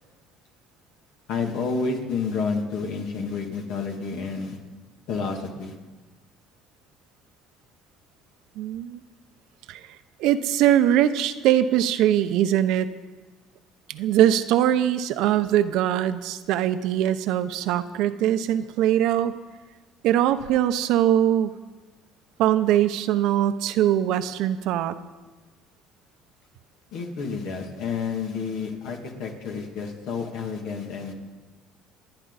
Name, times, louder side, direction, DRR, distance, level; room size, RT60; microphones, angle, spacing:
voice 1, 1.3-4.6 5.1-5.7 26.9-31.1, left 5 dB, 70° left, 2 dB, 2.5 m, -30 dB
voice 2, 8.6-9.0 9.7-9.8 10.2-12.9 13.9-19.3 20.0-21.5 22.4-24.9, right 11 dB, 75° right, 11 dB, 0.8 m, -22 dB
28.0 x 9.9 x 4.2 m, 1.3 s
cardioid pair, 110°, 0 cm